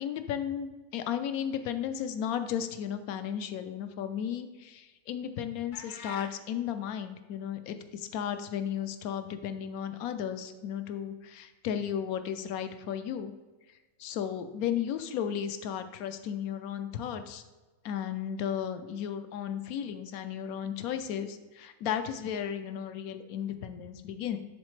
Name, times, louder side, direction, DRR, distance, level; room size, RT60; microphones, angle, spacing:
voice 1, 0.0-13.3 14.0-17.4 17.8-24.4, left 9 dB, 85° left, 9 dB, 1.1 m, -34 dB
sound 1, 5.7-6.4, left 3 dB, 55° left, 0.5 m, -44 dB
10.5 x 4.2 x 3.2 m, 1.2 s
omnidirectional pair, 1.5 m